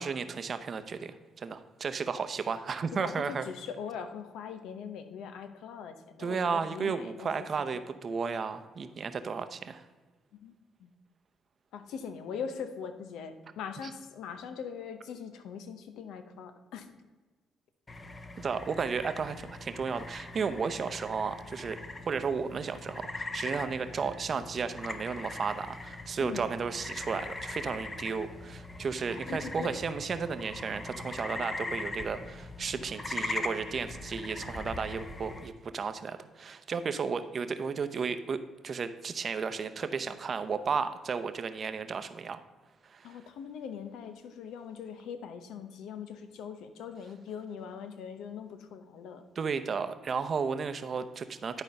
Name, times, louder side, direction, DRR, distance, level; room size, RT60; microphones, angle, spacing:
voice 1, 0.0-3.5 6.2-9.8 18.4-21.8 22.1-42.4 42.9-43.2 49.4-51.6, right 5 dB, 50° right, 10 dB, 0.7 m, -33 dB
voice 2, 2.9-7.8 10.4-10.5 10.8-10.9 11.7-16.9 26.2-26.5 29.1-29.8 43.0-49.2, left 7 dB, 85° left, 9 dB, 0.8 m, -41 dB
sound 1, 17.9-35.5, left 2 dB, 30° left, 0.9 m, -41 dB
10.5 x 4.5 x 5.3 m, 1.3 s
cardioid pair, 80°, 0 cm